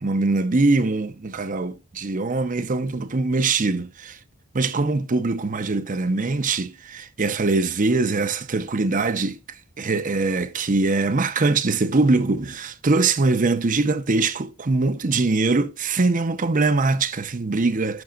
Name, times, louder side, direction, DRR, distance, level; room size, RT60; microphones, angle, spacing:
voice 1, 0.0-4.2 4.5-9.4 9.8-18.0, right 3 dB, 40° right, 0.7 m, -22 dB
10.5 x 6.0 x 2.4 m
head